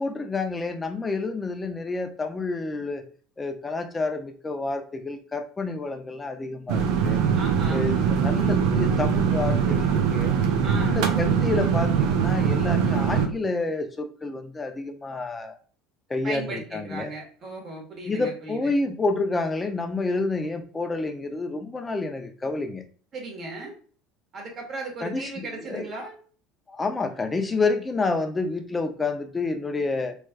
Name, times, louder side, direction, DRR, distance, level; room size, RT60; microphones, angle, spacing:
voice 1, 0.0-3.0 3.4-7.2 7.7-10.3 10.7-15.5 16.1-17.1 18.1-22.8 25.0-25.9 26.7-30.2, left 3 dB, 20° left, 6 dB, 0.6 m, -29 dB
sound 1, 6.7-13.3, right 7 dB, 70° right, 0.5 m, -22 dB
voice 2, 7.4-7.9 10.6-11.0 16.2-18.7 23.1-23.7 24.3-26.2, right 3 dB, 45° right, 0 dB, 1.5 m, -36 dB
3.2 x 3.2 x 2.3 m, 0.42 s
hypercardioid pair, 80°, 0 cm